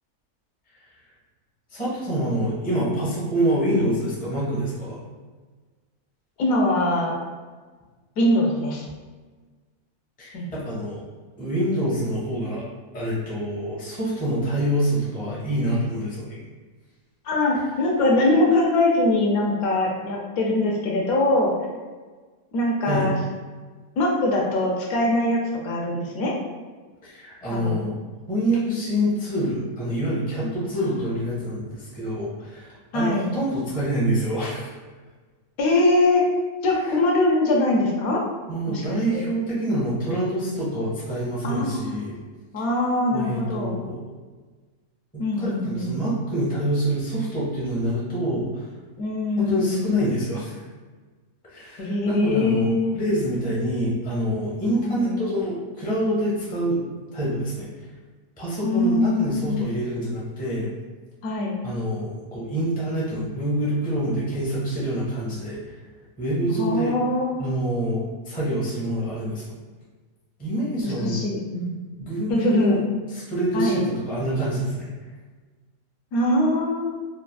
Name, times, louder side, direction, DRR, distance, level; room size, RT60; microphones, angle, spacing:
voice 1, 1.7-5.0 10.2-11.0 11.4-16.4 22.9-23.1 27.0-28.0 28.3-34.7 36.8-36.9 38.5-42.2 43.1-44.0 45.1-48.7 49.4-50.6 51.5-56.8 57.1-57.9 58.4-60.7 61.6-65.6 66.2-66.9 67.4-69.6 70.4-71.2 72.0-72.8 73.1-74.9, right 1 dB, 10° left, -7 dB, 0.5 m, -26 dB
voice 2, 6.4-7.2 8.2-8.9 10.3-10.5 17.2-21.5 22.5-23.1 24.0-26.4 27.5-27.8 30.4-30.9 32.9-33.3 35.6-36.2 36.6-38.2 38.7-39.3 41.4-41.9 42.5-43.8 45.2-45.9 49.0-49.8 51.8-53.0 54.7-55.2 58.6-59.7 61.2-61.6 66.5-67.4 71.0-71.7 72.3-72.8 73.5-73.8 76.1-76.9, left 2 dB, 75° left, -1 dB, 1.0 m, -22 dB
3.3 x 2.3 x 2.2 m, 1.4 s
omnidirectional pair, 1.6 m